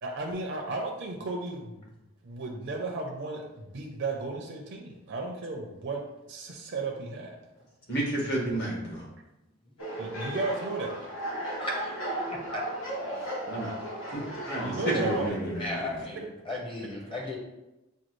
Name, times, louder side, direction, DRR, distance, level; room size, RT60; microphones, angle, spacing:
voice 1, 0.0-1.8 2.2-7.4 10.0-11.0 14.6-15.4 16.2-17.1, right 3 dB, 60° right, 0 dB, 0.5 m, -35 dB
voice 2, 7.9-9.0 13.5-13.7 14.1-15.9, right 1 dB, 55° left, -3 dB, 1.5 m, -31 dB
sound 1, 9.8-15.3, right 1 dB, 80° left, 1.1 m, -35 dB
voice 3, 12.3-12.6 15.6-17.4, left 1 dB, 25° left, -1 dB, 0.9 m, -36 dB
6.2 x 2.3 x 3.1 m, 0.96 s
head